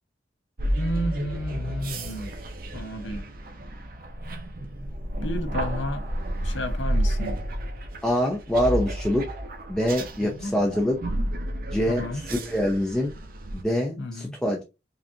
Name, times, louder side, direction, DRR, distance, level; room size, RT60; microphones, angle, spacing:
sound 1, 0.6-13.6, right 1 dB, 50° right, 0.7 m, -31 dB
voice 1, 0.8-2.3 2.7-3.2 5.2-6.0 6.4-7.4 10.2-10.6 11.9-12.2 14.0-14.3, equal, 85° left, 0.7 m, -32 dB
voice 2, 8.0-9.2 9.7-11.0 11.7-13.1 13.5-14.6, equal, 5° left, 0.5 m, -25 dB
4.9 x 2.4 x 2.7 m
head